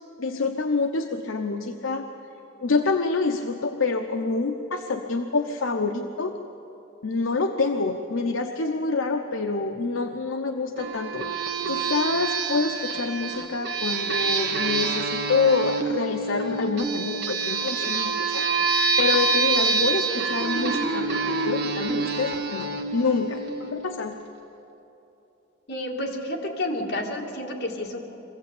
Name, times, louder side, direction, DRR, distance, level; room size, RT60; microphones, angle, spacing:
voice 1, 0.2-2.0 2.6-6.3 7.0-18.5 19.0-24.1, left 4 dB, 75° left, 5 dB, 0.8 m, -27 dB
sound 1, 10.8-24.0, right 4 dB, 60° right, 1.4 m, -27 dB
voice 2, 25.7-28.0, left 1 dB, 55° left, -1 dB, 2.7 m, -30 dB
23.5 x 15.5 x 8.5 m, 3.0 s
head